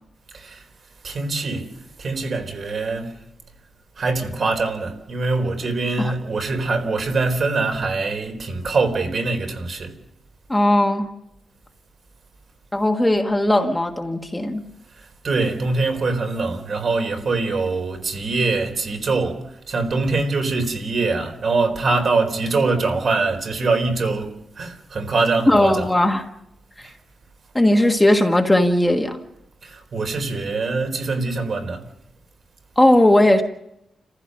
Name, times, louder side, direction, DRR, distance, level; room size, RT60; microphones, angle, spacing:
voice 1, 0.3-0.7 1.0-1.7 2.0-3.2 4.0-9.9 15.0-25.9 26.8-26.9 29.6-31.9, right 3 dB, 50° right, 4.1 m, -23 dB
voice 2, 10.5-11.1 12.7-14.6 25.5-26.2 26.8-26.9 27.5-29.2 32.8-33.4, left 1 dB, 10° left, 1.5 m, -17 dB
30.0 x 15.5 x 6.6 m
wide cardioid pair, 130°, 0 cm